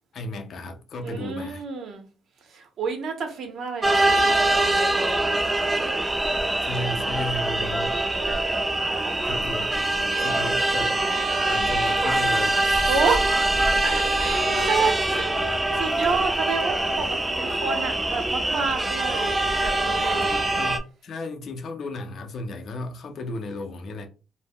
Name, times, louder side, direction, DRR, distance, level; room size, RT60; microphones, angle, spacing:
voice 1, 0.1-1.6 6.6-8.0 9.2-9.7 10.2-11.0 11.5-13.0 14.6-14.7 19.9-24.1, left 2 dB, 60° left, 0.4 m, -34 dB
voice 2, 1.0-2.1 2.4-5.4 6.8-9.4 12.9-15.3 15.7-20.6, right 4 dB, 65° right, 0.7 m, -30 dB
sound 1, 3.8-20.8, right 2 dB, 15° right, 0.4 m, -24 dB
2.1 x 2.0 x 3.4 m
cardioid pair, 90°, 0 cm